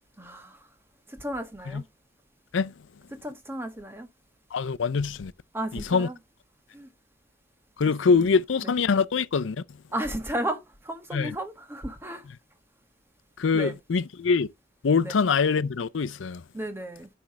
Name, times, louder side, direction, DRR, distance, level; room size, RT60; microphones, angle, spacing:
voice 1, 0.2-0.7 1.1-1.9 3.1-4.1 5.5-6.2 6.7-6.9 8.1-8.3 8.6-8.7 9.9-12.3 13.5-13.7 15.0-15.2 16.5-17.1, right 1 dB, 15° right, 1.4 m, -34 dB
voice 2, 4.5-5.3 5.7-6.1 7.8-9.6 11.1-11.3 13.4-14.5 14.8-16.4, left 5 dB, 85° left, 0.5 m, -24 dB
10.0 x 3.4 x 6.2 m
head